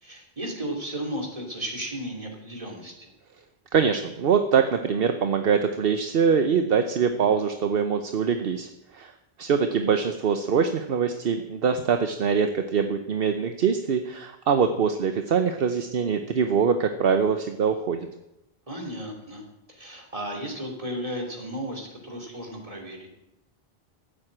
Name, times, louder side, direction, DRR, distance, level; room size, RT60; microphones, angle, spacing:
voice 1, 0.0-3.1 18.7-19.4 19.7-23.1, right 1 dB, 35° right, 0 dB, 3.2 m, -34 dB
voice 2, 3.7-9.1 9.4-18.1, right 6 dB, 65° right, 7 dB, 1.0 m, -23 dB
14.5 x 7.8 x 8.7 m, 0.90 s
omnidirectional pair, 1.1 m